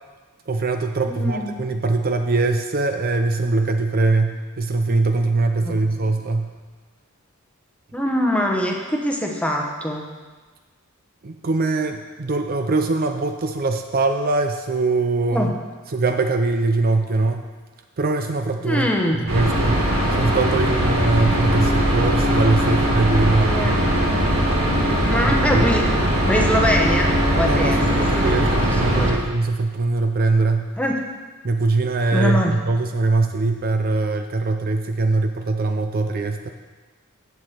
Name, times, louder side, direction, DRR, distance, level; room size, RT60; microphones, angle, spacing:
voice 1, 0.5-6.5 11.2-15.5 15.9-17.5 18.0-18.9 19.2-19.8 20.2-23.8 25.2-25.7 27.4-30.7 31.4-36.5, right 3 dB, 45° right, 6 dB, 0.5 m, -22 dB
voice 2, 1.0-1.6 5.6-6.1 7.9-10.1 15.3-15.6 18.6-19.2 23.4-23.8 25.0-25.9 26.3-29.1 30.8-31.0 32.1-32.6, left 1 dB, 5° left, 1 dB, 1.0 m, -24 dB
sound 1, 19.3-29.1, equal, 70° right, 2.2 m, -20 dB
8.0 x 7.2 x 6.5 m, 1.3 s
head